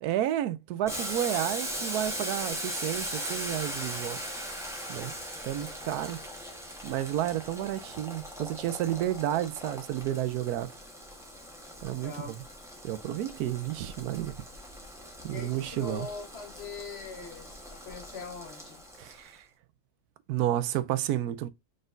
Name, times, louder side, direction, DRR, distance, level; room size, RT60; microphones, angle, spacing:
voice 1, 0.0-4.2 4.9-5.1 5.4-6.2 6.8-10.7 11.8-12.4 12.8-14.3 15.2-16.1 19.0-19.4 20.3-21.5, right 12 dB, 80° right, 1.1 m, -31 dB
Boiling, 0.9-19.3, equal, ahead, 1.1 m, -39 dB
voice 2, 11.8-12.4 15.3-18.8, left 5 dB, 50° left, 1.1 m, -42 dB
5.1 x 4.0 x 2.5 m
omnidirectional pair, 1.6 m